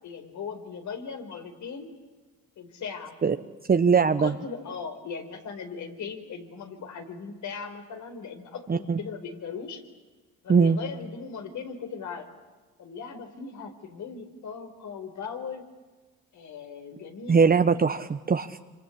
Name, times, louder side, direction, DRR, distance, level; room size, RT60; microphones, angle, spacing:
voice 1, 0.0-1.9 2.6-3.2 4.0-9.8 10.4-12.3 12.8-15.6 16.3-17.5, left 5 dB, 60° left, 7 dB, 4.5 m, -38 dB
voice 2, 3.7-4.3 8.7-9.0 10.5-10.8 17.3-18.6, right 5 dB, 25° right, 8 dB, 1.1 m, -21 dB
26.5 x 25.5 x 8.5 m, 1.3 s
cardioid pair, 90°, 33 cm